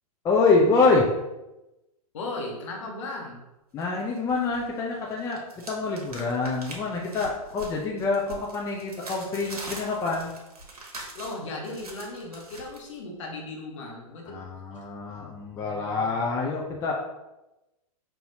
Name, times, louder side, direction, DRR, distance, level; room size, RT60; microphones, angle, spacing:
voice 1, 0.2-1.1 3.7-10.3 14.3-16.9, left 3 dB, 15° left, -1 dB, 0.5 m, -26 dB
voice 2, 2.1-3.4 11.1-14.4 14.8-14.9, left 2 dB, 50° left, 0 dB, 1.1 m, -36 dB
sound 1, 3.8-4.7 4.9-12.8, right 2 dB, 75° right, 1.0 m, -43 dB
5.4 x 2.7 x 2.7 m, 0.97 s
figure-of-eight pair, 110°, 19 cm